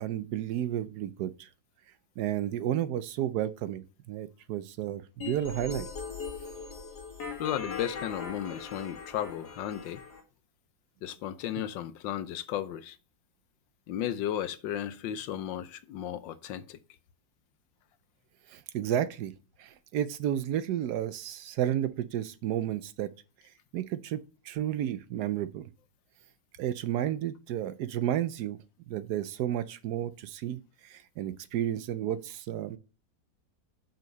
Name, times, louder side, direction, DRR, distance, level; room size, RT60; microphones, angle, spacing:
voice 1, 0.0-1.5 2.2-5.9 18.5-19.3 19.6-23.1 23.7-24.2 24.4-25.7 26.6-28.6 28.9-32.8, right 11 dB, 70° right, 1.1 m, -32 dB
sound 1, 5.2-10.2, left 5 dB, 60° left, 2.0 m, -40 dB
voice 2, 7.4-10.0 11.0-13.0 13.9-16.8, left 11 dB, 90° left, 1.4 m, -34 dB
5.9 x 5.8 x 5.2 m
omnidirectional pair, 1.9 m